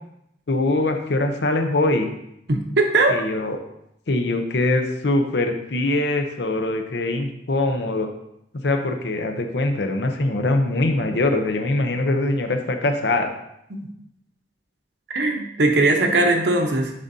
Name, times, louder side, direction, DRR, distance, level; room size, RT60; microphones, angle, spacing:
voice 1, 0.5-2.1 3.1-3.6 4.1-8.1 8.6-13.3, left 2 dB, 65° left, 5 dB, 0.7 m, -22 dB
voice 2, 2.5-3.2 13.7-13.9 15.1-16.9, right 2 dB, 70° right, 4 dB, 0.9 m, -20 dB
9.6 x 3.8 x 2.7 m, 0.80 s
head